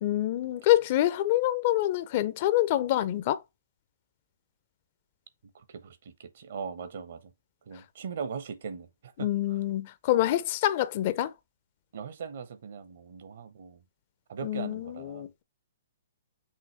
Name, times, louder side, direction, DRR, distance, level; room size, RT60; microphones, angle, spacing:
voice 1, 0.0-3.4 9.2-11.3 14.4-15.4, left 14 dB, 45° left, 0.5 m, -26 dB
voice 2, 5.5-7.3 7.7-9.6 11.9-13.8 14.3-15.3, right 6 dB, 60° right, 1.0 m, -40 dB
5.6 x 2.8 x 3.3 m
figure-of-eight pair, 125°, 0 cm